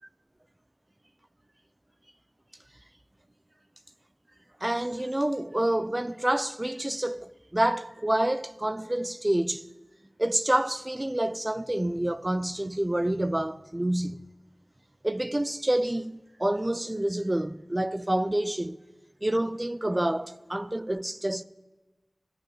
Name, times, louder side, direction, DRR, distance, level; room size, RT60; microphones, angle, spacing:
voice 1, 4.6-9.7 10.2-14.2 15.0-18.8 19.2-21.4, right 1 dB, 25° right, 0.5 m, -28 dB
12.5 x 12.5 x 7.2 m
wide cardioid pair, 45°, 0 cm